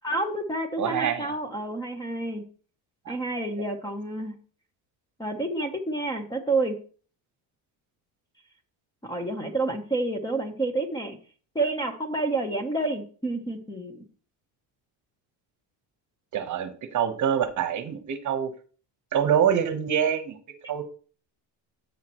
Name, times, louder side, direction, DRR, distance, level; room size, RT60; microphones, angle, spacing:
voice 1, 0.0-2.4 3.1-4.4 5.2-6.8 9.0-11.2 11.5-14.0, right 2 dB, 10° left, 6 dB, 0.8 m, -29 dB
voice 2, 0.8-1.3 3.1-3.2 3.6-3.7 16.3-18.5 19.1-20.4 20.7-20.8, right 8 dB, 45° right, 9 dB, 1.1 m, -25 dB
10.5 x 8.5 x 3.0 m, 0.40 s
cardioid pair, 155°, 43 cm